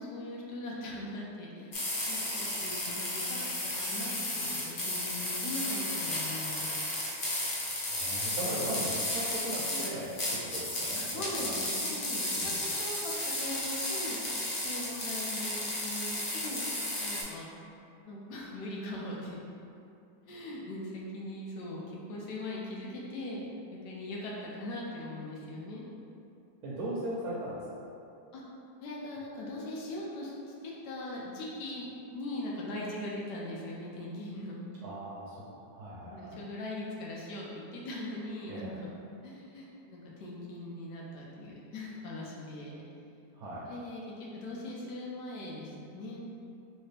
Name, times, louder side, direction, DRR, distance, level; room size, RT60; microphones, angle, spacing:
voice 1, 0.0-1.8 2.1-6.7 9.7-9.9 10.9-14.4 14.6-16.6 17.0-19.4 20.2-23.4 23.7-25.8 28.3-28.4 28.8-34.8 36.1-38.9 39.2-42.8 43.6-46.2, left 1 dB, 75° left, -4 dB, 1.2 m, -40 dB
sound 1, 1.7-17.2, left 1 dB, 55° left, 0.5 m, -34 dB
voice 2, 7.9-11.1 11.3-11.6 12.3-12.6 26.6-27.8 34.8-36.4 38.5-38.8 43.3-43.7, right 1 dB, 70° right, -6 dB, 1.0 m, -38 dB
3.3 x 2.9 x 3.2 m, 2.7 s
omnidirectional pair, 1.9 m